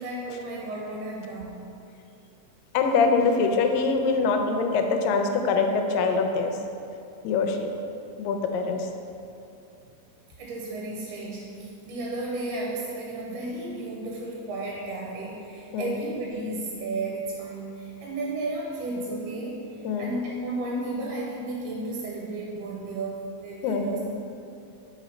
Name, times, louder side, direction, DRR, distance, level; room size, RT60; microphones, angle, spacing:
voice 1, 0.0-1.7 10.4-19.6 20.0-24.0, right 2 dB, 85° right, -3 dB, 2.2 m, -33 dB
voice 2, 2.7-6.6 7.2-7.7 8.2-8.9 15.7-15.9 19.8-20.1 23.6-24.1, left 4 dB, 85° left, 4 dB, 2.2 m, -24 dB
5.1 x 4.2 x 5.0 m, 2.6 s
omnidirectional pair, 3.9 m